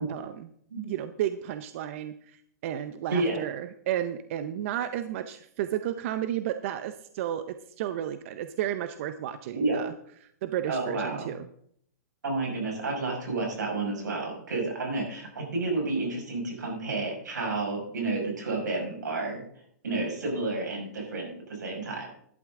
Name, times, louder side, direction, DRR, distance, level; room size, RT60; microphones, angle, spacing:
voice 1, 0.1-0.5 0.8-7.4 7.8-9.9 10.2-11.5, right 11 dB, 45° right, 10 dB, 0.7 m, -32 dB
voice 2, 10.7-11.3 12.2-19.4 19.8-22.1, right 3 dB, 90° right, 0 dB, 5.8 m, -30 dB
12.0 x 11.5 x 3.7 m, 0.66 s
hypercardioid pair, 145°, 9 cm